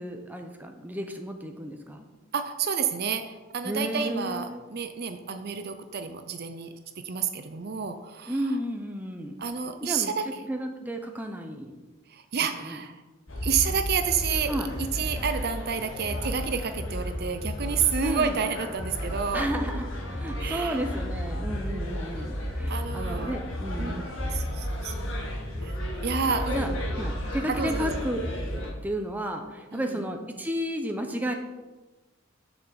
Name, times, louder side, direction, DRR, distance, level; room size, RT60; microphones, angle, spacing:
voice 1, 0.0-2.0 3.6-4.6 8.3-9.4 9.8-11.8 12.6-12.8 14.5-14.7 18.0-18.4 19.3-24.2 26.5-26.7 27.0-28.2 28.5-31.3, equal, 10° right, 4 dB, 0.8 m, -32 dB
voice 2, 2.3-6.7 7.0-8.4 9.4-10.4 12.1-13.0 13.4-14.5 14.8-19.5 20.4-20.8 22.7-23.3 23.8-24.1 24.3-24.9 25.6-25.7 26.0-26.8 27.5-28.0 29.7-30.0, right 6 dB, 50° right, 8 dB, 0.6 m, -30 dB
sound 1, 13.3-28.7, equal, 75° left, 2.2 m, -32 dB
7.0 x 5.9 x 6.9 m, 1.2 s
head